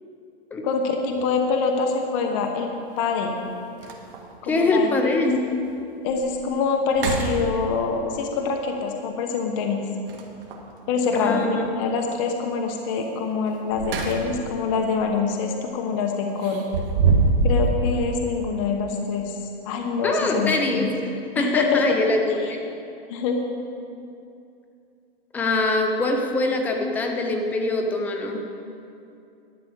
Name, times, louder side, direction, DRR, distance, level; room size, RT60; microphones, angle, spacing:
voice 1, 0.6-2.7 3.0-3.4 4.4-5.3 6.0-9.9 10.9-16.6 17.4-19.4 19.6-20.9 21.3-21.8 22.4-22.6 23.1-23.4, left 5 dB, 30° left, 3 dB, 1.1 m, -25 dB
sound 1, 1.1-1.2 3.0-3.1 3.5-3.6 3.8-4.4 4.9-5.0 5.6-5.7 6.1-6.4 6.9-8.0 10.1-10.7 13.5-14.5 14.9-15.1 16.4-17.7, right 4 dB, 60° right, 1.8 m, -24 dB
voice 2, 4.5-5.4 11.1-11.5 20.0-20.9 21.4-22.6 25.3-28.4, left 2 dB, 5° left, 3 dB, 0.4 m, -23 dB
12.0 x 6.0 x 8.5 m, 2.6 s
hypercardioid pair, 155°, 31 cm